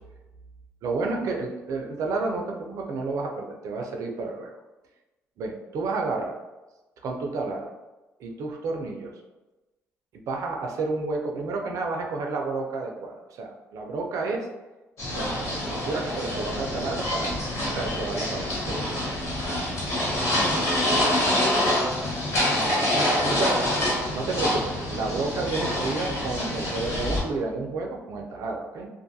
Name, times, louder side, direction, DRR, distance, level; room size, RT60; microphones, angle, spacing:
voice 1, 0.8-4.5 5.4-6.3 7.0-7.7 8.2-9.1 10.1-14.5 15.1-17.4 17.7-18.9 23.2-23.6 24.1-28.9, right 3 dB, 70° right, 1 dB, 0.4 m, -30 dB
sound 1, 15.0-27.2, left 1 dB, 60° left, 1.3 m, -26 dB
voice 2, 20.1-21.5 22.5-23.8, left 1 dB, 20° left, -1 dB, 0.6 m, -37 dB
2.5 x 2.3 x 2.6 m, 1.1 s
cardioid pair, 75°, 6 cm